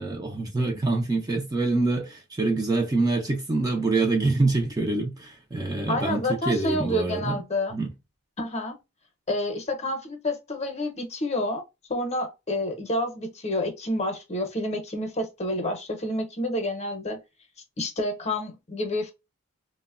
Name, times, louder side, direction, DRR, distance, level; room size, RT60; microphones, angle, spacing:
voice 1, 0.0-7.4 7.7-7.9, right 3 dB, 15° right, 0.4 m, -25 dB
voice 2, 5.9-7.8 8.4-8.8 9.3-11.6 11.9-17.2 17.8-19.1, left 1 dB, 30° left, 0.7 m, -29 dB
2.9 x 2.1 x 2.3 m
head